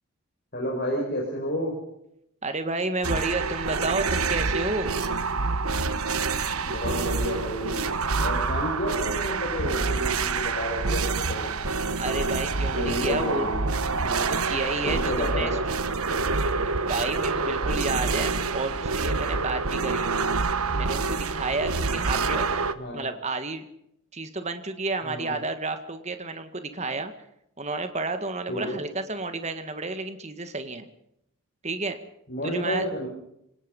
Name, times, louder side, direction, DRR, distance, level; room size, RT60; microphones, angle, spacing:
voice 1, 0.5-1.7 6.6-7.9 8.2-11.5 12.7-13.6 14.8-15.5 22.7-23.1 25.0-25.4 28.5-28.8 32.3-33.1, equal, 45° left, -2 dB, 5.9 m, -31 dB
voice 2, 2.4-5.0 12.0-13.5 14.0-15.6 16.8-20.1 20.7-22.6 22.9-23.6 24.1-27.1 27.6-30.9 31.6-32.0 32.4-32.8, right 3 dB, 30° right, 8 dB, 1.8 m, -31 dB
sound 1, 3.0-22.7, right 4 dB, 75° right, 1.3 m, -27 dB
26.5 x 18.5 x 5.5 m, 0.77 s
head